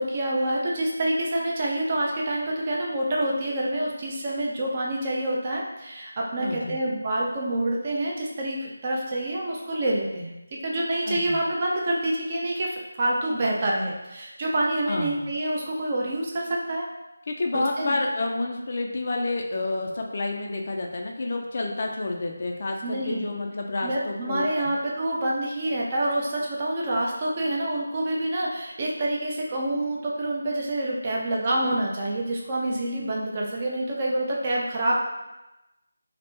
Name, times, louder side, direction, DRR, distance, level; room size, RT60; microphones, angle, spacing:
voice 1, 0.0-10.4 10.6-16.9 17.5-18.0 22.8-23.3 23.8-34.9, right 1 dB, 25° right, -3 dB, 0.4 m, -27 dB
voice 2, 6.4-6.8 11.0-11.4 14.9-15.2 17.3-24.7, left 2 dB, 40° left, 1 dB, 0.3 m, -29 dB
3.2 x 2.1 x 3.0 m, 0.97 s
figure-of-eight pair, 170°, 0 cm